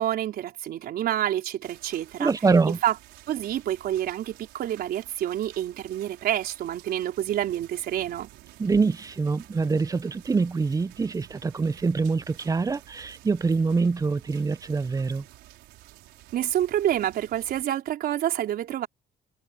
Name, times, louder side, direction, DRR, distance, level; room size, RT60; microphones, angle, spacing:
voice 1, 0.0-2.3 2.8-2.9 3.3-8.3 16.3-18.9, right 12 dB, 65° right, 4.5 m, -28 dB
sound 1, 1.6-17.6, right 16 dB, 85° right, 5.1 m, -51 dB
voice 2, 2.2-2.8 8.6-15.2, right 4 dB, 20° right, 0.7 m, -25 dB
cardioid pair, 110°, 17 cm